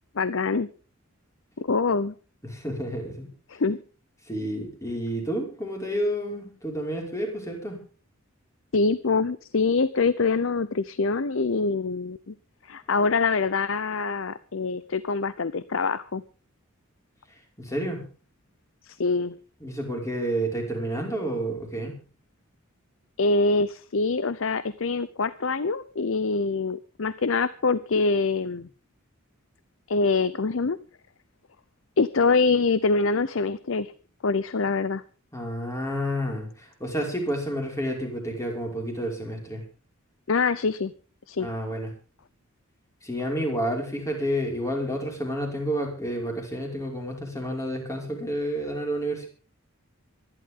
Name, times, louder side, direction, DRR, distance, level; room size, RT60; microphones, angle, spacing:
voice 1, 0.2-0.7 1.6-2.1 3.5-3.8 8.7-12.3 12.7-16.2 18.9-19.3 23.2-28.7 29.9-30.8 32.0-33.9 34.2-35.0 40.3-40.9 41.3-41.5, left 4 dB, 65° left, 16 dB, 0.7 m, -24 dB
voice 2, 2.4-3.3 4.3-7.8 17.6-18.0 19.6-22.0 35.3-39.6 41.4-41.9 43.0-49.3, equal, 15° left, 1 dB, 5.4 m, -30 dB
25.5 x 11.5 x 3.7 m, 0.37 s
head